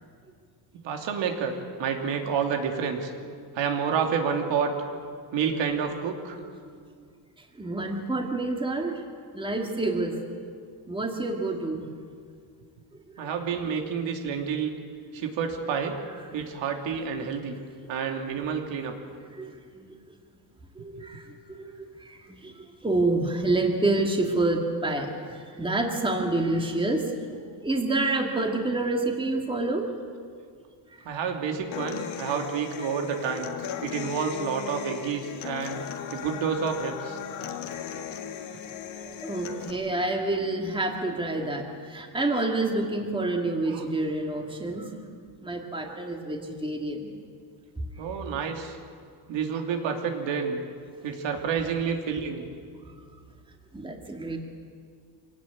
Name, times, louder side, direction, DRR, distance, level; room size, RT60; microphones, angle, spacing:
voice 1, 0.8-1.5 1.8-3.1 3.5-4.7 5.3-6.4 13.2-14.7 15.1-16.0 16.3-17.5 17.9-18.9 31.0-33.5 33.8-35.8 36.1-37.2 43.7-43.8 48.0-48.8 49.3-50.6 51.0-52.4, right 6 dB, 70° right, 3 dB, 2.8 m, -29 dB
voice 2, 7.6-9.0 9.3-10.1 10.9-11.8 17.2-17.3 19.4-19.9 20.8-21.2 21.5-22.5 22.8-27.0 27.3-29.9 39.1-44.9 45.4-47.1 53.7-54.4, right 2 dB, 10° right, 2 dB, 2.1 m, -28 dB
Human voice / Acoustic guitar, 31.7-39.7, left 8 dB, 75° left, 2.1 m, -37 dB
24.5 x 18.0 x 8.6 m, 2.1 s
cardioid pair, 140°, 46 cm